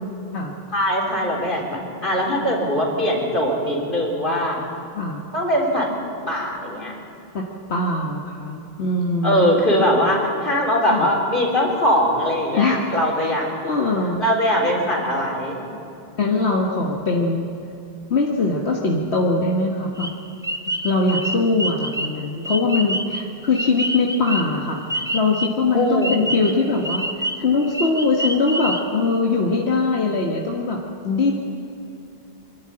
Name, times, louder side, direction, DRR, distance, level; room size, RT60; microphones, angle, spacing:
voice 1, 0.7-4.6 5.3-5.9 6.2-6.9 9.2-13.5 14.2-15.6 25.7-26.2, equal, 55° left, -2 dB, 4.2 m, -21 dB
voice 2, 7.7-9.5 10.9-11.1 12.5-13.4 13.6-14.2 16.2-17.5 18.1-20.1 20.8-31.3, left 3 dB, 80° left, -1 dB, 1.7 m, -22 dB
sound 1, 20.0-25.6 26.0-29.2, right 1 dB, 5° right, 0.6 m, -28 dB
25.5 x 11.5 x 8.8 m, 2.8 s
omnidirectional pair, 1.1 m